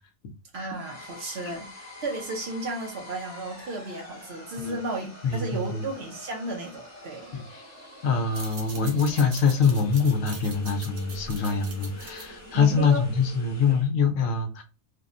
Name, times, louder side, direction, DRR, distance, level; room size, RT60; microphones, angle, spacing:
voice 1, 0.5-7.4 12.5-13.0, right 2 dB, 55° right, 0.9 m, -34 dB
sound 1, 0.7-13.9, left 1 dB, 15° left, 0.7 m, -46 dB
voice 2, 5.2-5.9 7.3-7.4 8.0-14.6, left 5 dB, 75° left, 1.0 m, -24 dB
sound 2, 8.2-13.4, right 4 dB, 80° right, 1.1 m, -43 dB
3.5 x 2.1 x 2.4 m
omnidirectional pair, 1.4 m